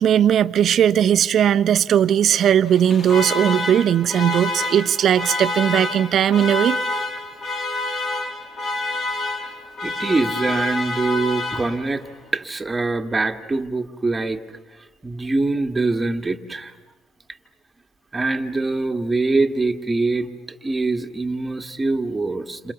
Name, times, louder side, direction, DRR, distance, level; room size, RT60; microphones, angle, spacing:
voice 1, 0.0-6.8, right 9 dB, 55° right, 13 dB, 0.9 m, -18 dB
Alarm, 2.7-12.1, left 2 dB, 45° left, 2.7 m, -28 dB
voice 2, 9.8-12.1 12.3-14.4 15.0-16.7 18.1-22.7, right 3 dB, 20° right, 6 dB, 1.9 m, -23 dB
29.0 x 27.0 x 7.0 m, 1.2 s
supercardioid pair, 70°, 0 cm